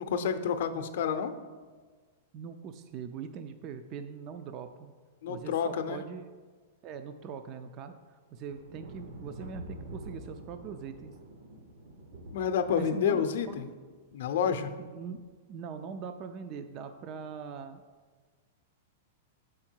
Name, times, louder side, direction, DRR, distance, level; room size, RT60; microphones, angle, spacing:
voice 1, 0.0-1.3 5.2-6.0 12.3-13.7 14.1-14.7, left 7 dB, 65° left, 8 dB, 0.6 m, -29 dB
voice 2, 2.3-4.9 5.3-6.2 6.8-11.1 12.7-13.7 14.8-15.2 15.5-17.8, right 6 dB, 30° right, 8 dB, 0.4 m, -42 dB
sound 1, 8.4-13.8 15.0-15.3, right 1 dB, 65° right, 1.0 m, -47 dB
6.9 x 4.8 x 4.5 m, 1.4 s
supercardioid pair, 155°, 0 cm